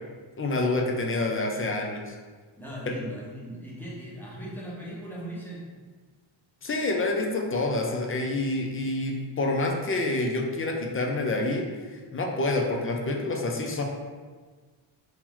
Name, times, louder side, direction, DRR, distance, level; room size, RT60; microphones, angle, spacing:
voice 1, 0.4-2.1 6.6-11.7 12.1-13.8, left 2 dB, 30° left, 1 dB, 0.5 m, -27 dB
voice 2, 2.6-5.7, right 1 dB, 5° left, -6 dB, 1.0 m, -38 dB
3.0 x 2.8 x 3.8 m, 1.4 s
cardioid pair, 100°, 45 cm